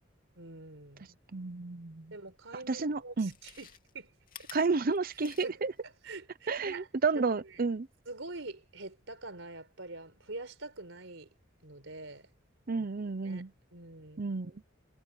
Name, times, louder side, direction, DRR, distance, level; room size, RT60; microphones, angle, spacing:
voice 1, 0.3-1.2 2.1-4.1 4.4-4.5 5.4-6.9 7.1-7.6 8.1-11.3 11.6-12.3 12.7-12.9 13.2-13.4 13.7-14.4, right 2 dB, 75° right, 4.7 m, -45 dB
voice 2, 1.3-2.1 2.7-3.3 4.5-5.7 6.5-7.9 12.7-13.5 14.2-14.5, right 4 dB, 50° right, 0.7 m, -31 dB
Chewing mastication, 2.4-2.5 3.1-5.8 6.2-6.3, left 9 dB, 45° left, 2.9 m, -52 dB
head